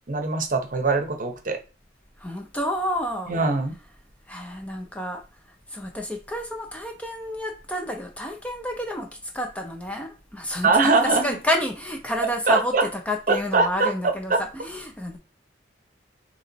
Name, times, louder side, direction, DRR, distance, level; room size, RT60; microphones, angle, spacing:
voice 1, 0.1-1.6 3.3-3.8 10.6-11.3 12.5-12.8 13.3-13.9 14.3-14.4, right 3 dB, 45° right, 0.8 m, -22 dB
voice 2, 2.2-3.3 4.3-5.2 5.7-15.2, left 1 dB, 5° left, 0.5 m, -30 dB
4.3 x 3.0 x 3.9 m
head